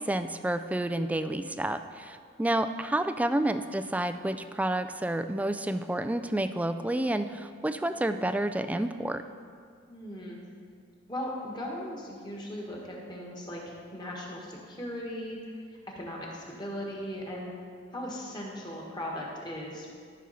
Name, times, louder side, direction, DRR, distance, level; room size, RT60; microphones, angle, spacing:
voice 1, 0.0-9.2, right 1 dB, 10° right, 10 dB, 0.3 m, -29 dB
voice 2, 9.9-10.4 11.1-15.4 15.9-17.5 17.9-19.9, equal, 25° left, -2 dB, 1.7 m, -38 dB
13.0 x 6.2 x 4.3 m, 2.1 s
head